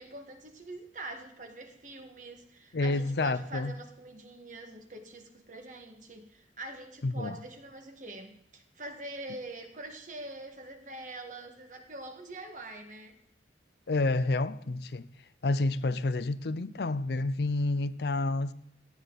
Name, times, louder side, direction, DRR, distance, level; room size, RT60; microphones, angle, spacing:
voice 1, 0.0-13.2 14.3-14.4, right 2 dB, 45° right, 1.8 m, -44 dB
voice 2, 2.7-3.7 7.0-7.4 13.9-15.1 15.4-18.5, left 2 dB, 60° left, 0.6 m, -29 dB
17.5 x 14.5 x 4.1 m
head